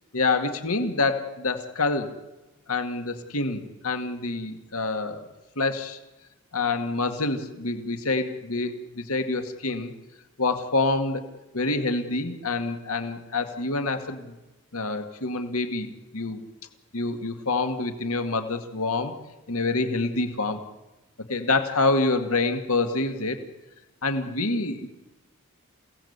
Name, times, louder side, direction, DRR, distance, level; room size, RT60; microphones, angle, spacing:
voice 1, 0.1-2.1 2.7-5.3 5.6-6.0 6.5-9.9 10.4-11.2 11.5-14.4 14.7-16.4 16.9-19.1 19.5-20.6 21.3-23.4 24.0-24.9, left 3 dB, 70° left, 6 dB, 2.1 m, -27 dB
28.5 x 17.5 x 8.1 m, 1.1 s
head